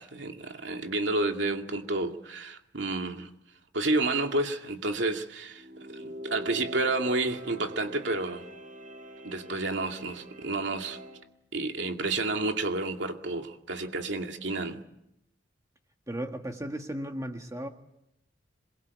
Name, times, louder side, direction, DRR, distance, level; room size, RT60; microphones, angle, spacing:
voice 1, 0.0-3.3 3.7-8.4 9.2-11.0 11.5-14.8, right 2 dB, 90° right, 2.3 m, -30 dB
sound 1, 5.5-11.2, equal, 50° right, 5.4 m, -44 dB
voice 2, 16.1-17.7, right 1 dB, 20° right, 1.7 m, -35 dB
27.5 x 22.0 x 8.3 m
head